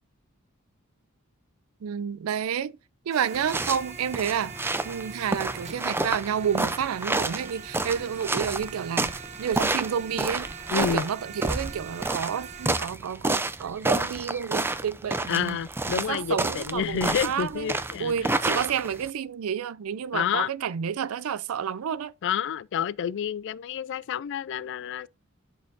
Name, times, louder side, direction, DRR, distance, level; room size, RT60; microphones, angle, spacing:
voice 1, 1.8-2.8 3.1-4.5 4.8-9.1 9.4-15.6 15.9-17.7 18.0-22.1, right 8 dB, 85° right, 0.4 m, -30 dB
sound 1, 3.1-12.9, right 6 dB, 30° right, 1.1 m, -43 dB
sound 2, 3.3-19.1, right 2 dB, 10° right, 0.4 m, -29 dB
voice 2, 10.7-11.1 15.3-18.4 20.1-20.5 22.2-25.1, left 8 dB, 60° left, 0.3 m, -29 dB
11.0 x 6.4 x 2.5 m
head